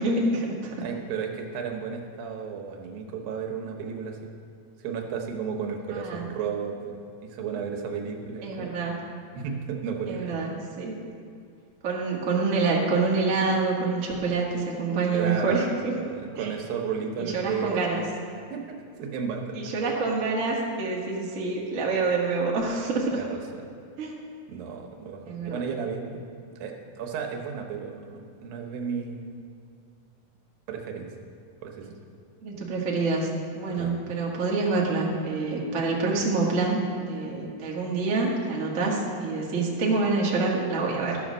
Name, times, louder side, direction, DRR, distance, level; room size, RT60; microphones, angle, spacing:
voice 1, 0.0-0.8 5.9-6.2 8.4-9.0 10.1-11.0 11.8-15.9 16.4-16.5 17.2-18.0 19.5-23.2 24.0-24.2 25.3-25.6 32.4-33.3 33.5-41.2, right 3 dB, 45° right, -3 dB, 1.0 m, -26 dB
voice 2, 0.8-4.3 4.8-8.7 9.4-10.3 15.1-15.6 16.0-18.0 18.5-19.7 23.2-23.7 24.5-29.4 30.7-31.1 31.6-31.9 33.7-34.0, right 6 dB, 90° right, 2 dB, 2.9 m, -33 dB
13.0 x 6.4 x 6.2 m, 2.4 s
omnidirectional pair, 4.0 m